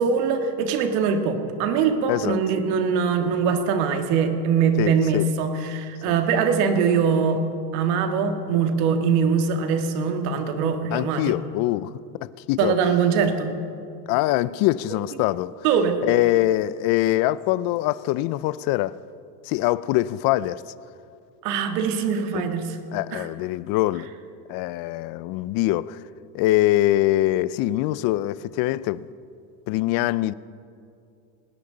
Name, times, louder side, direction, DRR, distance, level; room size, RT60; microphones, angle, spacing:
voice 1, 0.0-7.4 7.7-11.4 12.6-13.5 15.6-16.0 21.4-22.8 23.1-23.3, right 6 dB, 75° right, 1.9 m, -22 dB
voice 2, 4.8-5.3 10.9-12.7 14.1-15.6 16.0-19.0 19.4-20.6 22.3-22.4 22.9-24.1 24.5-26.0 26.3-29.1 29.7-30.3, left 16 dB, 50° left, 0.5 m, -23 dB
19.0 x 18.5 x 3.9 m
supercardioid pair, 135°, 47 cm